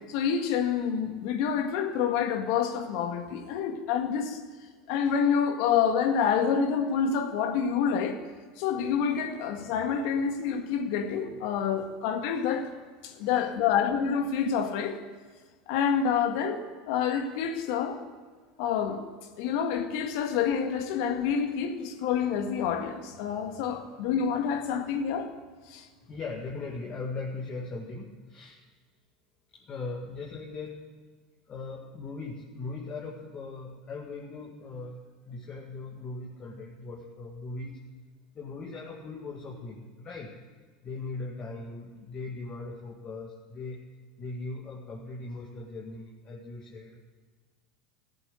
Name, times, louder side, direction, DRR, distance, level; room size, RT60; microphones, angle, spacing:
voice 1, 0.1-4.4 4.9-8.2 8.6-12.7 13.0-15.0 15.7-18.0 18.6-19.0 19.4-25.3 25.7-25.9, left 7 dB, 65° left, 5 dB, 1.9 m, -27 dB
voice 2, 26.1-28.6 29.5-30.8 31.5-37.9 38.3-40.4 40.8-43.8 44.2-47.0, left 3 dB, 35° left, -1 dB, 2.2 m, -39 dB
14.5 x 7.9 x 10.0 m, 1.5 s
hypercardioid pair, 90°, 3 cm